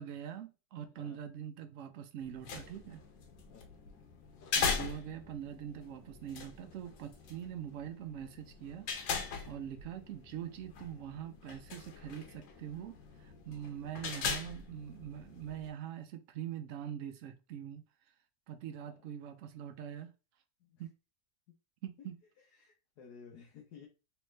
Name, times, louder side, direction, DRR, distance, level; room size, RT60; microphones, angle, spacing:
voice 1, 0.0-3.0 4.5-8.9 9.2-17.8 18.5-20.1 20.8-20.9 21.8-22.2, right 9 dB, 80° right, 0.7 m, -43 dB
sound 1, 2.2-15.7, left 5 dB, 90° left, 1.5 m, -41 dB
voice 2, 22.4-23.9, left 6 dB, 65° left, 1.2 m, -56 dB
3.5 x 3.2 x 3.1 m
omnidirectional pair, 1.9 m